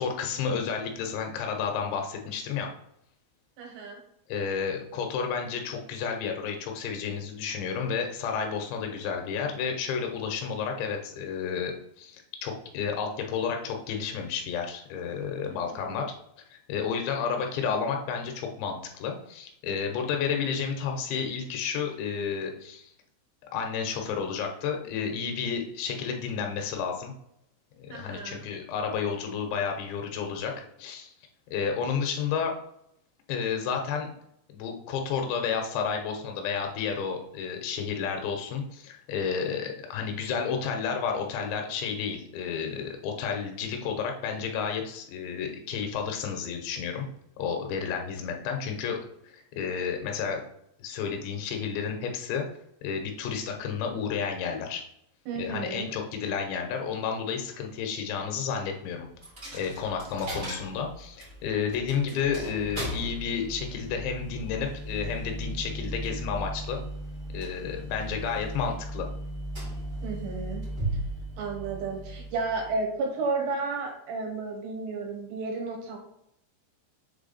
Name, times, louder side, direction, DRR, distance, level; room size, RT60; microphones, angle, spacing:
voice 1, 0.0-2.7 4.3-16.1 16.5-22.9 23.5-27.1 27.8-31.1 31.5-32.5 33.3-34.1 34.5-47.1 47.4-50.4 50.8-52.5 52.8-54.8 55.4-59.1 59.5-66.8 67.3-69.1, left 6 dB, 90° left, 3 dB, 3.3 m, -31 dB
voice 2, 3.6-4.0 15.5-16.0 27.9-28.5 55.3-55.9 70.0-70.7 71.4-76.0, right 3 dB, 75° right, 1 dB, 3.4 m, -32 dB
Coin (dropping), 59.2-72.9, right 1 dB, 25° right, 2.1 m, -37 dB
7.2 x 3.5 x 4.1 m, 0.75 s
omnidirectional pair, 5.0 m